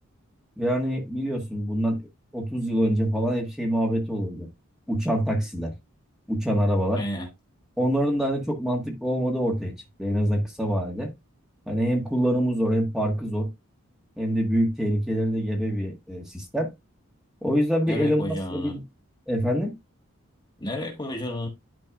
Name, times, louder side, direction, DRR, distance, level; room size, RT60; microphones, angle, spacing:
voice 1, 0.6-2.0 2.3-4.5 4.9-5.7 6.3-7.0 7.8-11.1 11.7-13.5 14.2-16.7 17.4-18.8 19.3-19.7, equal, ahead, 1.5 m, -25 dB
voice 2, 6.9-7.3 17.9-18.8 20.6-21.5, left 1 dB, 20° left, 1.5 m, -31 dB
11.5 x 4.5 x 2.4 m
head